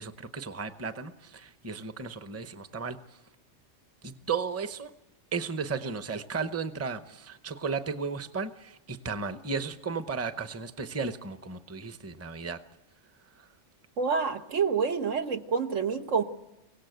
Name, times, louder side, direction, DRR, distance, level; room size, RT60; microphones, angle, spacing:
voice 1, 0.0-3.0 4.0-4.9 5.3-12.6 13.4-13.5, right 5 dB, 15° right, 10 dB, 0.7 m, -34 dB
voice 2, 14.0-16.2, right 5 dB, 85° right, 7 dB, 1.5 m, -27 dB
24.5 x 17.5 x 8.0 m, 0.93 s
omnidirectional pair, 1.3 m